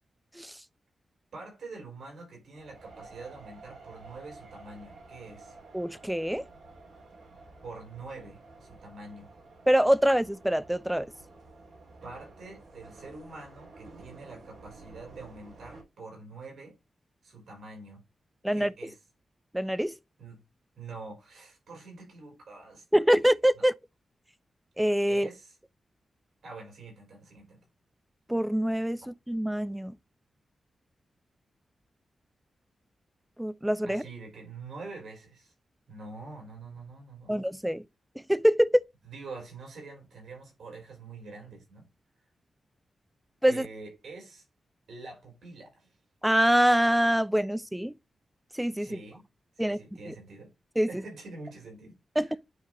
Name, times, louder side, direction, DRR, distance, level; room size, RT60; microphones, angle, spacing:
voice 1, 1.3-5.6 7.6-9.3 12.0-16.8 17.2-18.0 18.5-19.0 20.2-20.4 20.7-22.8 23.5-23.7 25.1-25.6 26.4-27.6 33.8-35.5 35.9-37.4 39.0-41.9 43.5-44.4 44.9-46.0 48.8-49.3 49.5-50.5 50.9-52.4, right 3 dB, 85° right, 4.6 m, -45 dB
sound 1, 2.5-15.8, right 3 dB, 70° right, 2.6 m, -51 dB
voice 2, 5.7-6.4 9.7-11.1 18.4-18.7 19.5-19.9 22.9-23.7 24.8-25.3 28.3-30.0 33.4-34.0 37.3-37.8 38.3-38.8 43.4-43.7 46.2-47.9 48.5-49.0 49.6-49.8 50.1-50.2 50.8-50.9 52.2-52.3, equal, 5° right, 0.4 m, -25 dB
9.5 x 3.2 x 3.8 m
wide cardioid pair, 165°, 0 cm